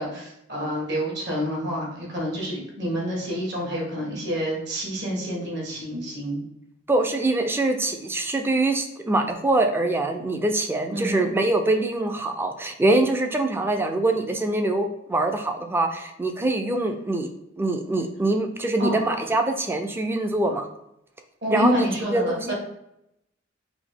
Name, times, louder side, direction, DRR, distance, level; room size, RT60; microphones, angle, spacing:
voice 1, 0.0-6.4 10.9-11.2 18.8-19.0 21.4-22.5, equal, 60° right, -2 dB, 1.5 m, -28 dB
voice 2, 6.9-17.3 17.6-20.7 21.5-22.5, right 2 dB, 10° right, 5 dB, 0.3 m, -24 dB
4.0 x 2.7 x 3.5 m, 0.81 s
head